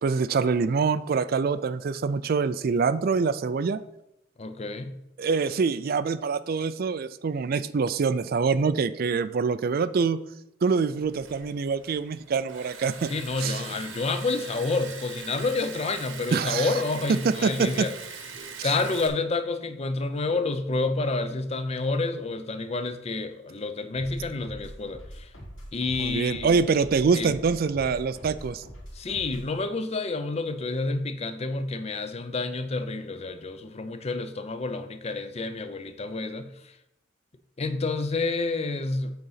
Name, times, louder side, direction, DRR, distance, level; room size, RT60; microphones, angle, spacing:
voice 1, 0.0-3.8 5.2-10.2 10.6-13.1 13.4-13.6 16.3-16.7 17.2-17.7 18.6-18.7 26.0-28.6, right 5 dB, 50° right, 14 dB, 0.4 m, -25 dB
voice 2, 4.4-4.9 13.1-17.9 18.6-25.3 25.7-26.6 27.1-27.3 28.9-36.7 37.6-39.1, left 3 dB, 30° left, 10 dB, 0.5 m, -29 dB
Liquid, 11.0-19.1, right 5 dB, 80° right, 1.3 m, -42 dB
sound 1, 23.9-29.6, equal, 80° left, 2.4 m, -43 dB
8.0 x 3.9 x 5.7 m, 0.84 s
head